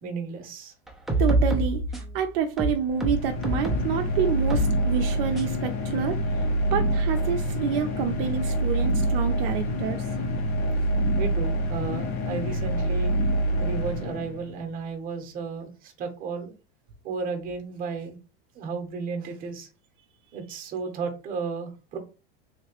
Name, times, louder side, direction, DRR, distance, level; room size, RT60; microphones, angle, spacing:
voice 1, 0.0-0.7 11.2-13.1 13.6-16.5 17.0-18.2 18.5-19.7 20.3-22.0, right 5 dB, 30° right, 5 dB, 0.8 m, -33 dB
sound 1, 0.9-2.2 2.6-3.9 4.5-4.7 5.4-5.5, right 1 dB, ahead, 0.5 m, -26 dB
voice 2, 1.2-6.4 6.7-10.0, right 7 dB, 65° right, 5 dB, 0.5 m, -28 dB
sound 2, 2.8-14.7, right 1 dB, 80° left, 1.6 m, -26 dB
3.2 x 2.9 x 2.9 m, 0.32 s
supercardioid pair, 150°, 30 cm